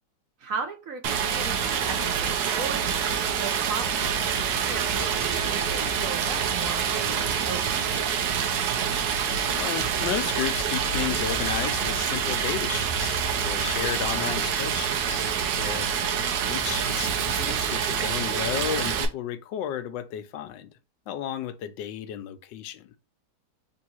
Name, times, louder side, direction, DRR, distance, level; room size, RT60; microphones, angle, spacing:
voice 1, 0.4-8.3, right 5 dB, 60° right, 1.0 m, -37 dB
Stream, 1.0-19.1, right 7 dB, 80° right, 1.4 m, -26 dB
voice 2, 9.6-15.3 15.6-15.9 16.4-20.7 21.1-22.9, left 10 dB, 85° left, 1.3 m, -33 dB
3.7 x 2.7 x 4.3 m
omnidirectional pair, 1.9 m